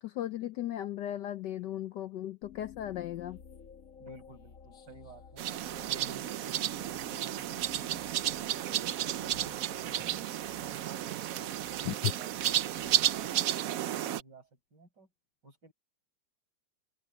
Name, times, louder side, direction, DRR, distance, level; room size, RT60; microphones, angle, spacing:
voice 1, 0.0-3.4 11.8-12.1, left 12 dB, 70° left, 1.2 m, -36 dB
sound 1, 2.4-14.0, left 6 dB, 45° left, 1.6 m, -55 dB
voice 2, 4.0-5.5 5.9-10.3 10.6-15.1 15.4-15.7, right 3 dB, 55° right, 6.1 m, -54 dB
sound 2, 5.4-14.2, right 12 dB, 80° right, 0.7 m, -32 dB
open air
omnidirectional pair, 2.2 m